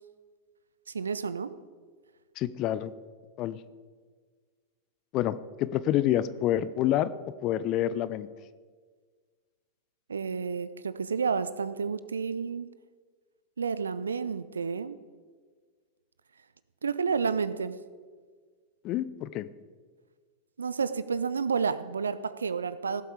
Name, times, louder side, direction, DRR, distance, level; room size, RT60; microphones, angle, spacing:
voice 1, 0.9-1.5 10.1-12.7 13.6-15.0 16.8-17.8 20.6-23.0, right 5 dB, 70° right, 15 dB, 0.6 m, -30 dB
voice 2, 2.4-2.9 3.4-3.6 5.1-7.1 7.4-8.3 18.8-19.5, left 12 dB, 40° left, 15 dB, 0.5 m, -28 dB
18.0 x 7.9 x 5.0 m, 1.5 s
figure-of-eight pair, 90°, 0 cm